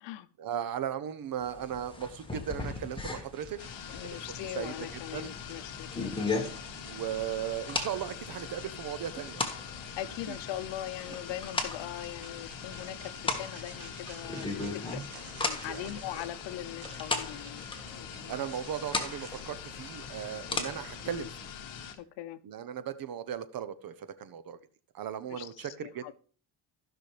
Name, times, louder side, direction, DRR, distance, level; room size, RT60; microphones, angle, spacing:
voice 1, 0.4-3.6 4.0-4.1 4.6-4.7 5.1-5.3 6.8-9.4 10.3-10.4 15.7-16.0 18.3-21.5 22.4-24.6 24.9-26.1, right 9 dB, 50° right, 14 dB, 0.9 m, -37 dB
sound 1, 1.4-21.3, left 3 dB, 10° left, 1.6 m, -39 dB
sound 2, 2.6-19.5, right 7 dB, 80° right, 2.1 m, -56 dB
sound 3, 3.6-21.9, left 8 dB, 45° left, 1.4 m, -44 dB
voice 2, 3.9-6.5 9.7-15.0 15.5-17.6 18.0-18.4 20.7-20.8 21.0-21.3 21.9-22.4 25.3-26.1, left 13 dB, 65° left, 14 dB, 0.8 m, -41 dB
15.0 x 6.2 x 3.3 m, 0.42 s
cardioid pair, 120°, 46 cm